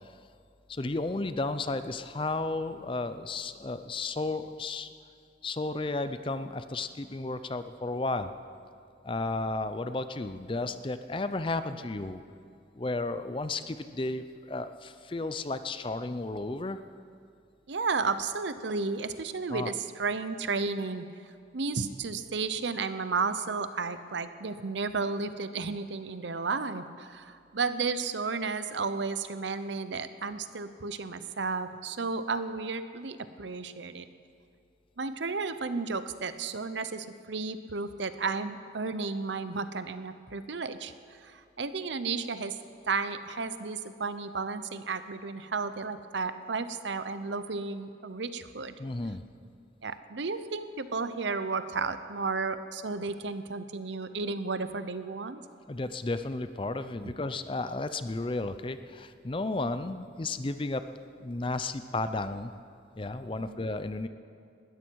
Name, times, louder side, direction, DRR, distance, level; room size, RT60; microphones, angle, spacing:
voice 1, 0.7-4.9 5.4-8.3 9.0-12.2 12.7-16.8 19.5-19.7 48.8-49.2 55.7-60.8 61.2-62.5 63.0-64.1, left 2 dB, 25° left, 11 dB, 0.5 m, -33 dB
voice 2, 17.7-21.1 21.5-34.1 35.0-42.6 42.9-48.7 49.8-55.4 57.0-57.1 63.4-63.6, right 4 dB, 75° right, 11 dB, 0.8 m, -33 dB
20.0 x 13.5 x 4.7 m, 2.4 s
head